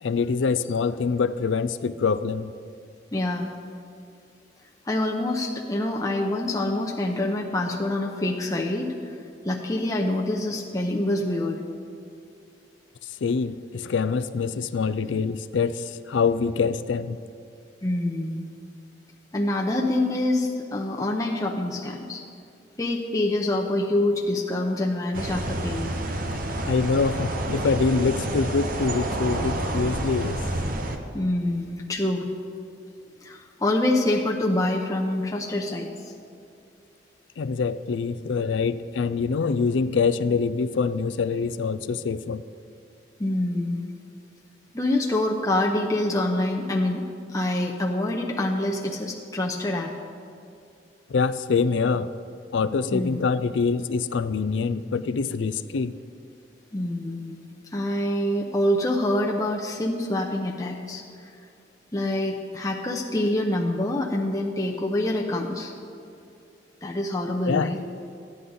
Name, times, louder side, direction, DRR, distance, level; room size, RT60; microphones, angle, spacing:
voice 1, 0.0-2.5 13.2-17.2 26.7-30.4 37.4-42.4 51.1-52.1 52.5-55.9 67.5-67.7, left 5 dB, 80° left, 14 dB, 0.4 m, -25 dB
voice 2, 3.1-3.5 4.9-8.9 9.4-11.6 17.8-18.4 19.3-22.2 22.8-26.0 31.1-32.3 33.2-36.1 43.2-43.8 44.7-47.0 47.3-49.9 52.9-53.2 56.7-57.4 57.7-61.0 61.9-66.0 66.8-67.8, left 1 dB, 20° left, -1 dB, 0.7 m, -26 dB
sound 1, 25.1-31.0, right 1 dB, 45° right, 0.8 m, -29 dB
14.0 x 9.6 x 3.9 m, 2.5 s
head